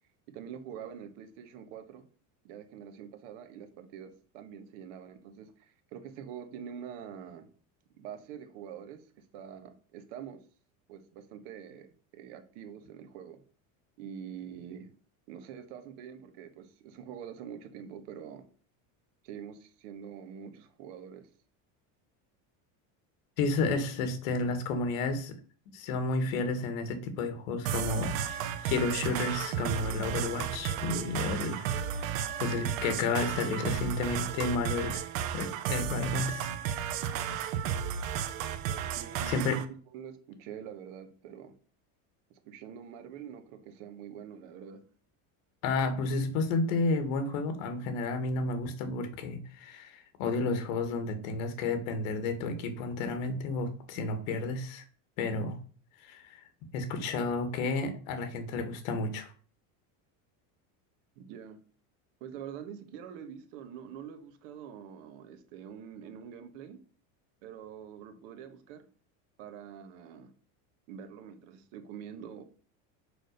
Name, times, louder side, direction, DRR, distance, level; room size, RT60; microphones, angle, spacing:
voice 1, 0.3-2.1 2.4-7.5 8.0-10.4 10.9-13.4 14.0-14.9 15.3-18.4 19.2-21.3 39.0-39.6 39.9-41.5 42.3-44.8 61.1-61.6 62.2-66.8 67.4-68.9 69.4-70.3 70.9-72.4, right 8 dB, 65° right, 1.5 m, -45 dB
voice 2, 23.4-25.4 25.7-32.1 32.4-35.1 35.3-36.5 39.3-39.6 45.6-54.9 55.2-55.6 56.0-56.4 56.7-59.3, left 3 dB, 80° left, 1.9 m, -31 dB
sound 1, 27.7-39.7, right 9 dB, 85° right, 1.1 m, -33 dB
6.3 x 5.0 x 6.6 m
cardioid pair, 180°, 40 cm